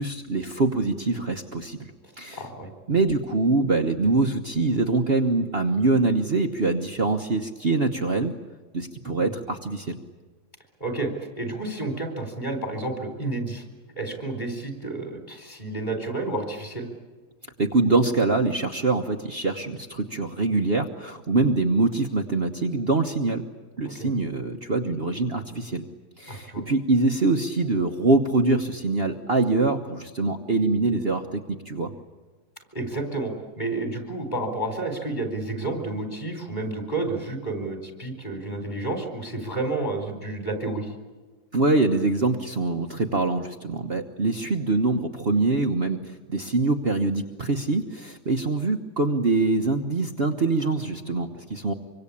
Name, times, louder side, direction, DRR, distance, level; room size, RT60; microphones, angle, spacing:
voice 1, 0.0-1.9 2.2-2.4 2.9-8.3 8.7-10.0 17.6-23.4 23.8-25.8 26.2-31.9 41.5-51.7, right 3 dB, 40° right, 4 dB, 1.3 m, -24 dB
voice 2, 2.3-2.7 9.2-9.3 10.8-13.6 14.0-16.9 23.9-24.1 26.3-26.6 32.7-40.9 50.6-51.1, right 2 dB, 25° left, 5 dB, 4.3 m, -30 dB
25.5 x 24.5 x 8.6 m, 1.4 s
omnidirectional pair, 1.7 m